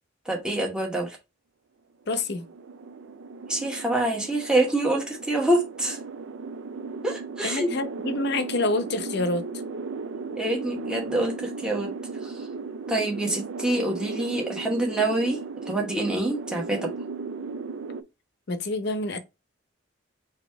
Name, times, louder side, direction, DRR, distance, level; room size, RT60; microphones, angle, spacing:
voice 1, 0.3-1.1 3.5-6.0 7.0-7.7 10.4-11.9 12.2-12.3 12.9-15.4 15.7-16.9, right 1 dB, 5° right, 1.1 m, -26 dB
voice 2, 2.1-2.5 7.4-9.5 18.5-19.2, left 2 dB, 55° left, 0.6 m, -27 dB
sound 1, 2.2-18.0, right 4 dB, 75° right, 0.4 m, -36 dB
4.0 x 2.8 x 4.6 m
head